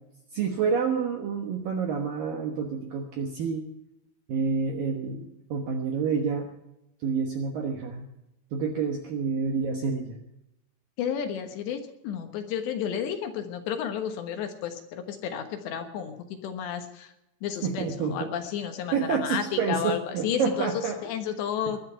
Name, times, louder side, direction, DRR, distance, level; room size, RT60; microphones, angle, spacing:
voice 1, 0.3-3.6 4.3-6.5 7.0-8.1 8.5-10.2 17.6-18.2 18.9-21.0, right 6 dB, 70° right, 3 dB, 2.2 m, -28 dB
voice 2, 11.0-17.1 17.4-20.7 21.0-21.8, left 8 dB, 70° left, 6 dB, 3.2 m, -32 dB
20.0 x 11.5 x 5.7 m, 0.89 s
omnidirectional pair, 5.7 m